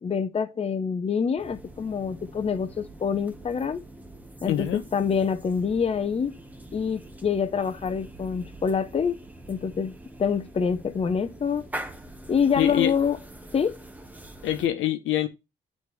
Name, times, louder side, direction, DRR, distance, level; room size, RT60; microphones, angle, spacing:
voice 1, 0.0-3.8 4.4-4.7 4.9-6.3 6.7-9.2 9.5-11.7 12.3-13.2 13.5-13.7, left 6 dB, 30° left, 0.7 m, -26 dB
sound 1, 1.4-14.7, right 1 dB, 10° right, 0.9 m, -44 dB
voice 2, 4.5-4.8 12.6-12.9 14.4-15.3, left 12 dB, 80° left, 1.0 m, -25 dB
9.3 x 4.2 x 3.2 m
cardioid pair, 90°, 20 cm